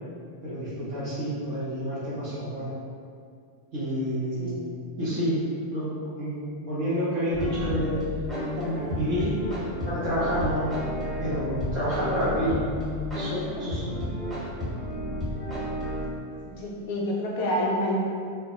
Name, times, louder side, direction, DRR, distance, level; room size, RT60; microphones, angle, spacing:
voice 1, 0.4-2.7 3.7-4.5 5.0-5.4 5.7-5.9 6.2-7.9 8.6-9.3 9.9-10.7 11.2-12.5 13.1-13.9, equal, 45° right, -11 dB, 0.6 m, -29 dB
sound 1, 7.3-16.1, left 1 dB, 5° right, 1.0 m, -32 dB
voice 2, 16.4-18.0, left 1 dB, 50° left, -3 dB, 0.3 m, -28 dB
2.1 x 2.1 x 3.0 m, 2.3 s
figure-of-eight pair, 90°, 0 cm